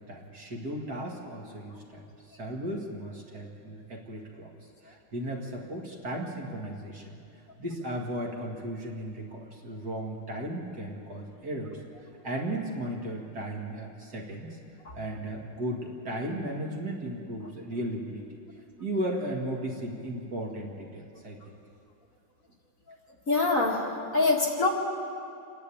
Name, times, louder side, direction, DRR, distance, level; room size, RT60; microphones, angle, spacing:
voice 1, 0.0-2.0 2.4-4.5 4.8-7.2 7.6-11.8 12.2-14.6 14.9-18.2 18.8-21.4, right 1 dB, 50° right, -1 dB, 2.7 m, -35 dB
voice 2, 23.3-24.7, left 3 dB, 40° left, -2 dB, 2.3 m, -24 dB
28.0 x 11.0 x 8.7 m, 2.5 s
omnidirectional pair, 2.3 m